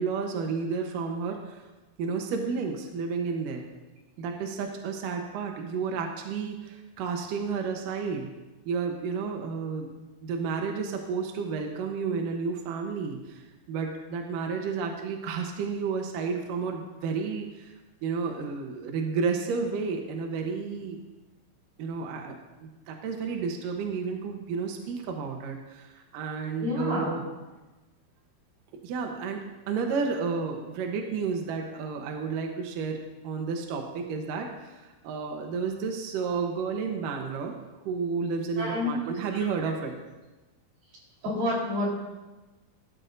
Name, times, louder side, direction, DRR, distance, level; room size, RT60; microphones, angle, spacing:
voice 1, 0.0-1.6 2.0-3.6 4.2-8.3 8.7-17.7 18.0-21.0 21.8-27.2 28.7-29.4 29.7-33.0 33.2-37.5 37.9-39.9, right 5 dB, 75° right, 2 dB, 2.0 m, -31 dB
voice 2, 26.6-27.1 38.6-38.9 41.2-41.9, left 1 dB, 55° right, -4 dB, 5.6 m, -28 dB
18.5 x 12.5 x 2.7 m, 1.1 s
omnidirectional pair, 5.2 m